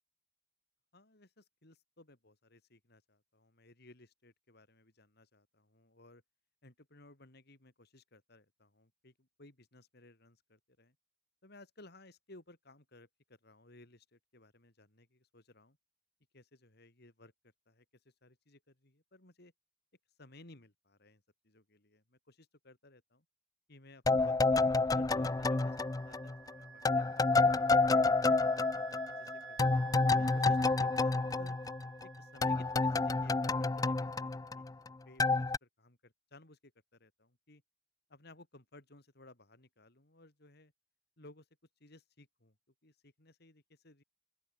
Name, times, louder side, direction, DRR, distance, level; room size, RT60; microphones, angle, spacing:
voice 1, 0.9-6.2 6.6-11.0 11.4-13.1 13.4-15.8 16.3-17.3 17.7-17.9 18.2-19.5 20.2-23.2 23.7-25.8 26.1-28.5 29.1-31.6 32.0-37.6 38.1-40.7 41.2-41.5 41.8-42.6 42.8-44.0, left 2 dB, 60° left, 3.8 m, -59 dB
sound 1, 24.1-26.5 26.9-32.1 32.4-34.9 35.2-35.6, left 3 dB, 20° left, 0.4 m, -29 dB
Wind instrument woodwind instrument, 25.2-33.5, right 6 dB, 80° right, 3.3 m, -52 dB
open air
head